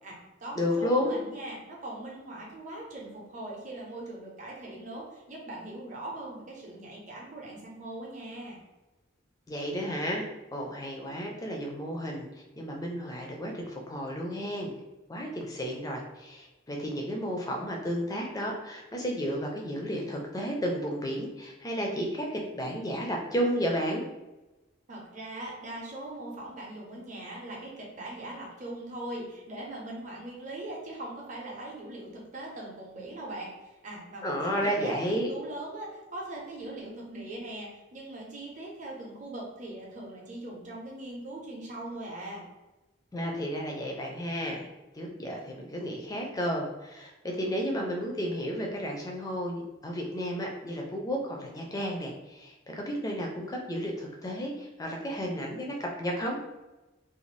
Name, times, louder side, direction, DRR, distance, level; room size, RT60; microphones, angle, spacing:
voice 1, 0.0-8.6 24.9-42.5, right 1 dB, 40° right, -2 dB, 0.7 m, -41 dB
voice 2, 0.5-1.1 9.5-14.7 15.1-24.0 34.2-35.3 43.1-44.7 44.9-56.4, equal, 20° left, 0 dB, 0.4 m, -32 dB
2.6 x 2.3 x 3.1 m, 1.1 s
head